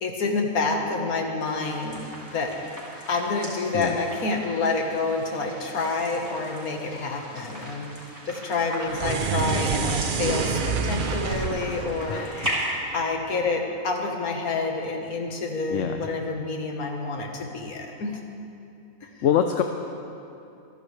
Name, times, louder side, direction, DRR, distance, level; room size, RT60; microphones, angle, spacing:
voice 1, 0.0-2.1 2.3-2.5 3.1-7.9 8.3-12.5 12.9-18.2 19.0-19.1, left 3 dB, 85° left, 2 dB, 1.8 m, -28 dB
sound 1, 1.4-12.7, equal, 25° right, 3.8 m, -38 dB
sound 2, 8.9-13.3, right 5 dB, 50° right, 0.6 m, -28 dB
voice 2, 12.1-12.6 15.7-16.0 19.2-19.6, left 9 dB, 65° left, 6 dB, 0.9 m, -25 dB
26.5 x 11.0 x 3.3 m, 2.7 s
omnidirectional pair, 1.5 m